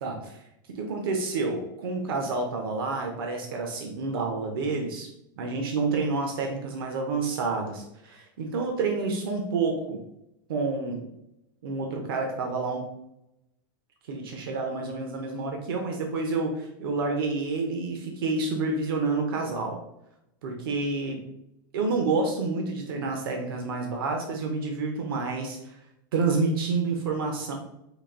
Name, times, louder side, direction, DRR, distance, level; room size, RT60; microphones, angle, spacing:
voice 1, 0.0-5.1 5.4-10.0 10.5-11.0 11.6-12.8 14.1-19.8 20.4-21.2 21.7-25.7 26.1-27.5, right 3 dB, 90° right, 2 dB, 0.9 m, -29 dB
5.0 x 2.6 x 3.7 m, 0.83 s
supercardioid pair, 165°, 12 cm